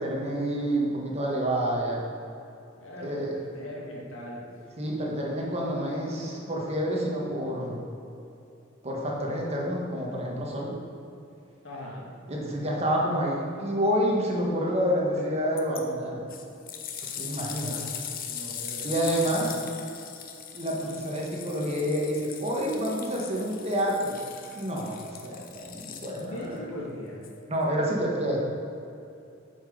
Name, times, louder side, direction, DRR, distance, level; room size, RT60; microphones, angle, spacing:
voice 1, 0.0-2.0 3.0-3.3 4.8-7.8 8.8-10.8 12.3-16.3 17.0-17.8 18.8-19.6 20.5-24.2 24.5-26.4 27.5-28.4, equal, 30° right, -3 dB, 1.5 m, -28 dB
voice 2, 2.8-4.5 6.1-6.2 11.6-12.1 17.6-17.9 18.2-18.9 19.2-19.3 26.2-27.3, left 1 dB, 75° left, -2 dB, 1.9 m, -40 dB
sound 1, 15.6-15.8 16.3-26.5 27.2-27.3, left 8 dB, 45° left, 0.7 m, -39 dB
8.5 x 6.1 x 5.2 m, 2.7 s
head